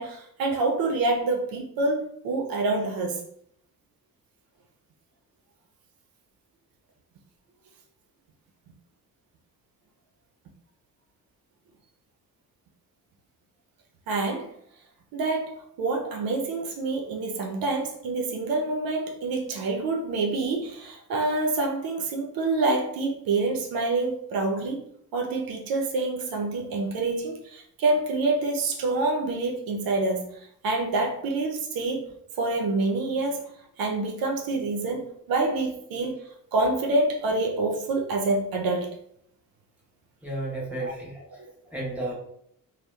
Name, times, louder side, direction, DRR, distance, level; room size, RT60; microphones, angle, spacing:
voice 1, 0.0-3.2 14.1-14.5 15.1-32.1 32.4-33.5 33.8-36.2 36.5-39.0 40.8-40.9 41.4-41.5, right 3 dB, 75° right, 1 dB, 0.5 m, -27 dB
voice 2, 40.2-41.2 41.7-42.1, right 2 dB, 5° right, -5 dB, 1.0 m, -32 dB
2.7 x 2.0 x 2.2 m, 0.70 s
cardioid pair, 85°, 35 cm